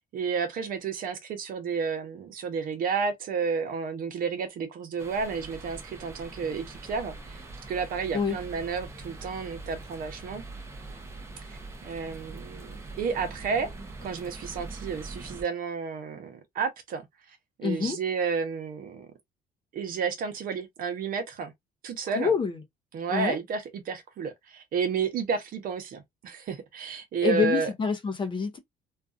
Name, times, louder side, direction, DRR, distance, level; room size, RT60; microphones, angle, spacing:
voice 1, 0.1-10.4 11.5-13.7 14.0-17.1 17.6-19.1 19.7-21.5 21.8-22.3 22.9-27.7, right 5 dB, 55° right, 0.8 m, -31 dB
sound 1, 5.0-15.4, right 2 dB, 15° right, 0.7 m, -43 dB
voice 2, 17.6-18.0 22.1-22.6 23.1-23.4 27.2-28.6, left 6 dB, 30° left, 0.6 m, -26 dB
2.5 x 2.3 x 2.3 m
cardioid pair, 110°, 17 cm